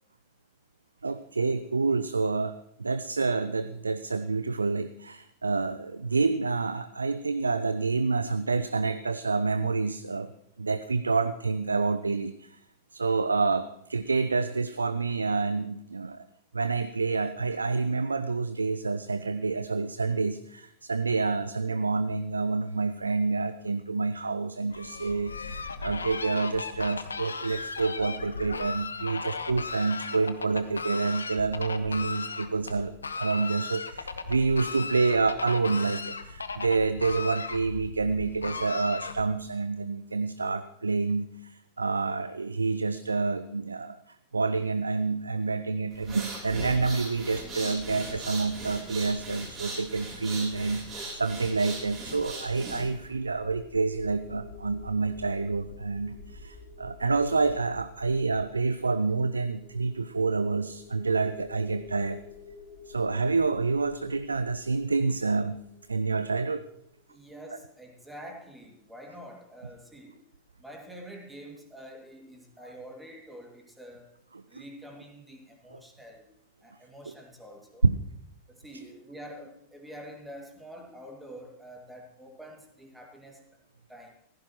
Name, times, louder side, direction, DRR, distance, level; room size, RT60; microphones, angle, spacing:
voice 1, 1.0-10.3 10.6-12.6 12.9-16.2 16.5-62.2 62.9-65.6 65.9-66.6 72.6-72.7 74.3-74.6 75.7-75.8 77.1-77.2 77.8-78.0, right 4 dB, 75° right, 13 dB, 0.4 m, -28 dB
Fowl, 24.7-39.5, left 4 dB, 75° left, 0.8 m, -37 dB
sound 1, 45.9-53.1, right 2 dB, 30° right, 4.3 m, -39 dB
sound 2, 51.8-66.6, left 3 dB, 50° left, 3.5 m, -50 dB
voice 2, 67.1-70.2 70.6-74.1 74.5-76.3 76.6-77.9 78.5-83.4 83.9-84.1, equal, 5° right, 1 dB, 2.4 m, -46 dB
15.5 x 14.5 x 3.1 m, 0.76 s
figure-of-eight pair, 90°, 0 cm